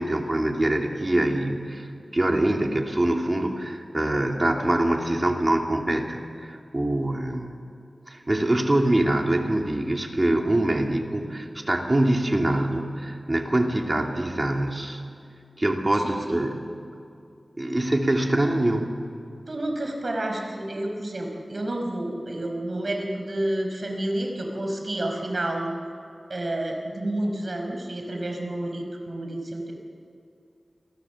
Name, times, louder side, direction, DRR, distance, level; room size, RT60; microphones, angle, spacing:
voice 1, 0.0-1.9 2.1-7.5 8.1-15.0 15.6-16.7 17.6-18.9, right 1 dB, 30° right, 2 dB, 2.7 m, -24 dB
voice 2, 15.9-16.4 19.5-25.7 26.3-29.7, right 1 dB, 55° right, 2 dB, 5.1 m, -30 dB
28.0 x 22.0 x 7.2 m, 2.6 s
wide cardioid pair, 80°, 0 cm